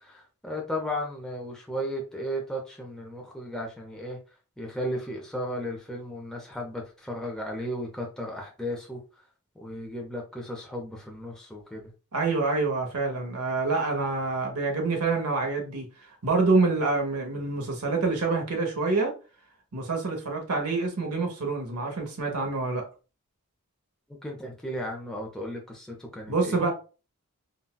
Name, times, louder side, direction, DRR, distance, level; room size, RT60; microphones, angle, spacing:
voice 1, 0.0-4.2 4.6-9.0 9.6-11.9 24.2-26.7, equal, 5° left, 0.5 m, -35 dB
voice 2, 12.1-15.9 16.2-19.1 19.7-22.8 26.3-26.7, right 3 dB, 85° right, 0.8 m, -26 dB
3.9 x 2.2 x 2.2 m
head